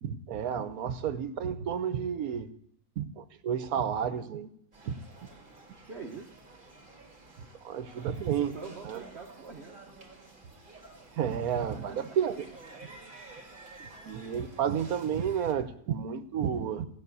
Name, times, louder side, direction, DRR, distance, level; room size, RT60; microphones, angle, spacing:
voice 1, 0.0-2.5 3.0-4.5 4.9-5.0 7.6-8.5 8.8-9.0 11.2-12.5 14.0-16.9, right 8 dB, 75° right, 11 dB, 1.3 m, -31 dB
sound 1, 4.7-15.5, right 2 dB, 35° right, 2.0 m, -51 dB
voice 2, 5.8-6.4 7.5-7.6 8.4-9.8 11.7-12.0 13.8-13.9, right 4 dB, 50° right, 1 dB, 1.2 m, -44 dB
16.5 x 6.2 x 8.1 m, 0.70 s
omnidirectional pair, 1.6 m